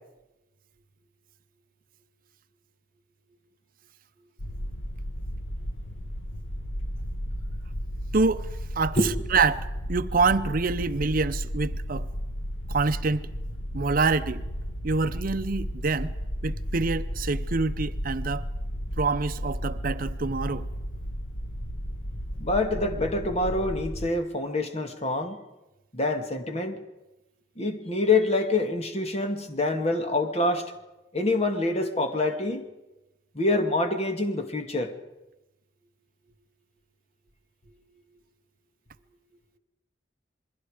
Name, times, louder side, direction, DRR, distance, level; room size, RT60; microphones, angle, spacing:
sound 1, 4.4-24.1, equal, 85° left, 1.4 m, -34 dB
voice 1, 8.1-8.5 8.8-9.0 9.3-12.1 12.7-13.3 13.7-14.4 14.8-16.1 16.4-18.4 19.0-20.7, right 4 dB, 50° right, 0.7 m, -26 dB
voice 2, 22.4-25.4 25.9-26.8 27.6-30.7 31.1-32.7 33.3-34.9, left 2 dB, 35° left, 2.1 m, -26 dB
27.5 x 21.5 x 5.0 m
head